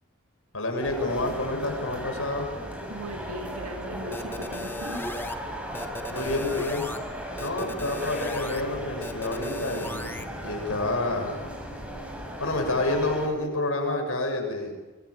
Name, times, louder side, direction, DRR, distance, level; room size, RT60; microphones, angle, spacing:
voice 1, 0.5-2.5 6.1-6.9 7.4-10.1 10.4-11.3 12.4-14.7, left 2 dB, 65° left, 3 dB, 7.4 m, -28 dB
sound 1, 0.8-13.3, equal, 5° right, 6.7 m, -37 dB
voice 2, 2.9-5.0, right 1 dB, 80° right, 4 dB, 2.7 m, -38 dB
sound 2, 4.1-5.4 5.7-7.0 7.4-8.6 9.0-10.3, left 2 dB, 10° left, 2.2 m, -36 dB
27.0 x 25.0 x 8.9 m, 1.1 s
head